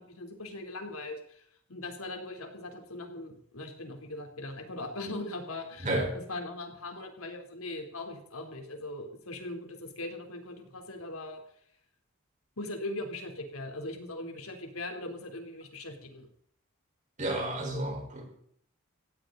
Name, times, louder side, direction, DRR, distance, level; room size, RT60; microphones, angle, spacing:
voice 1, 0.0-1.4 1.7-5.9 6.3-11.4 12.6-16.3, left 2 dB, 85° left, 4 dB, 3.3 m, -40 dB
voice 2, 5.8-6.1 17.2-18.3, right 1 dB, 35° right, 2 dB, 4.4 m, -31 dB
18.0 x 15.5 x 3.9 m, 0.65 s
head